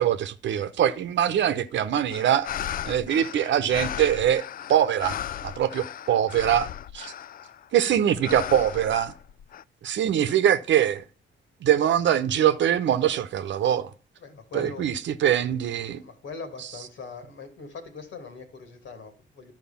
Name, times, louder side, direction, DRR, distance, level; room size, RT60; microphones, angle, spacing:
voice 1, 0.0-2.5 2.8-5.2 5.4-6.7 6.9-7.1 7.7-9.1 9.8-11.0 11.6-13.9 14.5-16.0, right 10 dB, 65° right, 0.9 m, -23 dB
sound 1, 2.1-7.6 8.2-9.6, left 10 dB, 45° left, 0.4 m, -36 dB
voice 2, 14.2-14.8 16.0-19.5, left 4 dB, 75° left, 2.8 m, -41 dB
11.5 x 4.8 x 7.2 m
cardioid pair, 90°, 20 cm